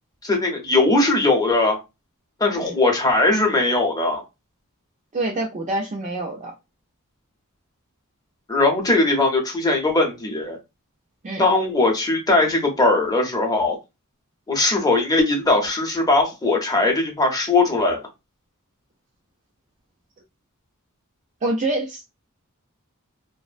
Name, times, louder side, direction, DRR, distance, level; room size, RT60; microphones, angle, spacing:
voice 1, 0.2-1.8 2.4-4.2 8.5-10.6 11.4-13.8 14.5-18.0, left 2 dB, 15° left, 0.7 m, -20 dB
voice 2, 5.1-6.5 11.2-11.4 21.4-22.0, right 2 dB, 35° right, 0.4 m, -26 dB
2.5 x 2.0 x 2.5 m
head